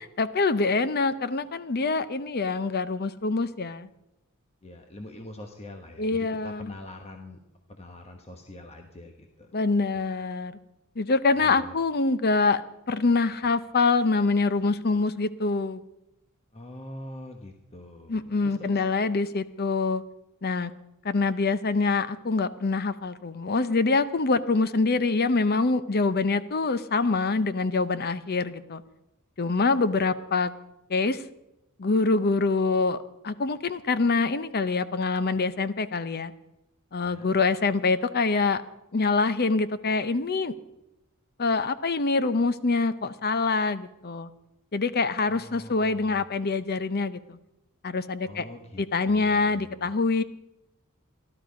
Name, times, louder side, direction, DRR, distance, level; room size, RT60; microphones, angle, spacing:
voice 1, 0.2-3.9 6.0-6.7 9.5-10.5 11.0-12.6 12.9-15.8 18.1-20.0 20.4-20.7 21.0-28.8 29.4-30.5 30.9-31.2 31.8-33.0 33.2-36.3 36.9-38.6 38.9-40.5 41.4-44.3 44.7-47.4 47.8-48.4 48.8-50.2, left 3 dB, 45° left, 14 dB, 0.7 m, -25 dB
voice 2, 4.6-7.4 7.7-9.5 11.4-11.7 16.5-18.8 37.0-37.3 45.3-46.2 48.2-49.9, left 1 dB, 30° left, 4 dB, 1.2 m, -44 dB
15.5 x 12.0 x 5.2 m, 0.89 s
head